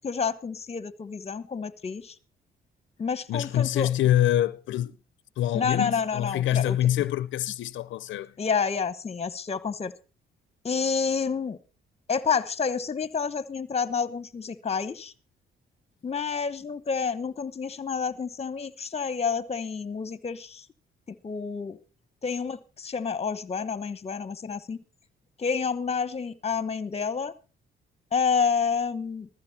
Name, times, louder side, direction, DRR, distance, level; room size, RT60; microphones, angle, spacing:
voice 1, 0.0-2.1 3.0-3.9 5.5-6.8 8.4-9.9 10.6-11.6 12.1-15.1 16.0-20.6 21.1-21.8 22.2-24.8 25.4-27.3 28.1-29.3, left 6 dB, 30° left, 1.1 m, -29 dB
voice 2, 3.3-5.0 5.4-8.3, left 12 dB, 75° left, 0.6 m, -25 dB
15.5 x 13.5 x 4.2 m
cardioid pair, 90°, 20 cm